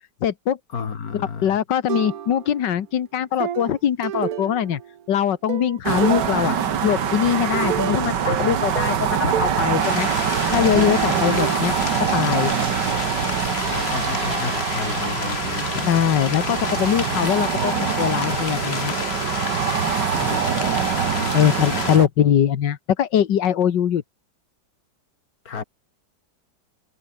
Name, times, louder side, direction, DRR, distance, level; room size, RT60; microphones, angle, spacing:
voice 1, 0.2-0.6 1.1-4.8 5.1-6.6 6.8-10.1 10.5-11.8 12.1-12.5 15.7-18.9 21.3-24.0, left 9 dB, 85° left, 1.9 m, -22 dB
voice 2, 0.7-1.6 13.6-15.7 20.1-20.7 21.1-21.9 25.5-25.6, left 6 dB, 55° left, 2.3 m, -32 dB
sound 1, 1.9-2.7 3.4-5.0 5.5-6.7 7.2-9.7 10.8-12.6, right 9 dB, 60° right, 1.4 m, -30 dB
sound 2, 5.9-22.1, right 8 dB, 80° right, 2.1 m, -24 dB
sound 3, 9.8-22.0, left 6 dB, 40° left, 1.4 m, -30 dB
omnidirectional pair, 1.9 m